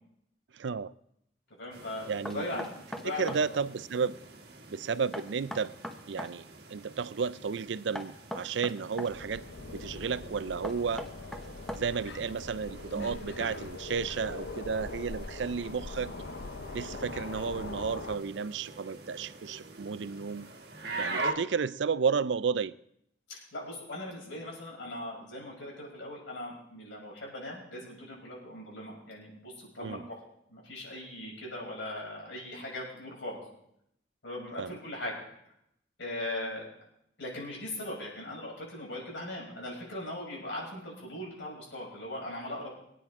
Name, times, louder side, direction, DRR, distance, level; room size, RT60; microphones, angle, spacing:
voice 1, 0.5-0.9 2.1-2.6 3.0-4.2 4.7-5.7 6.1-6.4 6.7-9.4 9.7-11.1 11.7-16.1 16.7-20.5 21.0-22.7 29.8-30.0 34.6-34.7, right 5 dB, 80° right, 0.5 m, -32 dB
voice 2, 1.6-3.6 23.3-30.1 30.5-33.4 34.2-35.2 36.0-36.7 37.2-42.7, left 1 dB, 85° left, 6.5 m, -39 dB
sound 1, 1.7-21.3, right 3 dB, 60° right, 1.5 m, -44 dB
Knock, 2.2-3.5 5.1-6.4 7.9-9.1 10.6-12.1, equal, 5° left, 0.9 m, -39 dB
sound 2, 9.1-18.2, left 3 dB, 70° left, 0.8 m, -42 dB
24.5 x 9.3 x 3.7 m
head